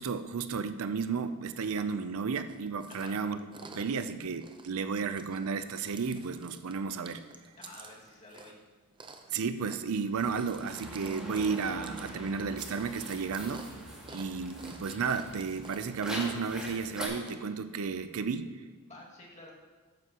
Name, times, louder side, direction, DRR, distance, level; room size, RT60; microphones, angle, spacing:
voice 1, 0.0-3.4 3.7-7.2 9.3-13.7 14.1-18.5, right 5 dB, 65° right, 11 dB, 0.5 m, -33 dB
Chewing mastication, 2.5-17.3, right 4 dB, 20° right, 0.6 m, -53 dB
voice 2, 2.9-3.2 7.6-8.5 14.0-14.2 18.9-19.7, left 1 dB, 30° left, -4 dB, 2.1 m, -51 dB
sound 1, 10.1-17.1, right 1 dB, 5° right, 1.9 m, -42 dB
14.0 x 9.1 x 2.9 m, 1.4 s
head